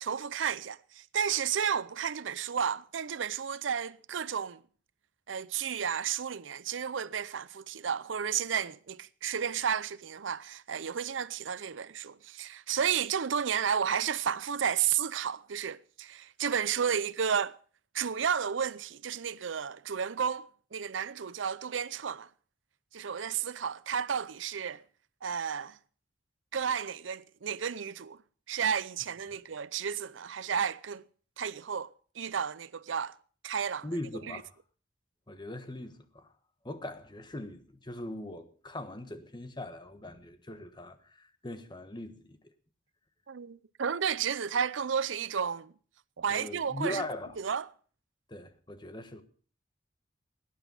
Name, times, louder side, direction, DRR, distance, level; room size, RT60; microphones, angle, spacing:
voice 1, 0.0-4.6 5.3-17.6 17.9-22.3 22.9-24.8 25.2-25.8 26.5-28.2 28.5-31.0 31.4-33.2 33.4-33.9 34.3-34.4 43.3-45.7 46.2-47.0 47.4-47.7, right 7 dB, 90° right, 0.6 m, -32 dB
voice 2, 33.8-34.5 35.3-36.3 36.6-42.4 46.3-47.4 48.3-49.2, left 1 dB, 25° left, 1.3 m, -40 dB
18.0 x 10.0 x 5.4 m
head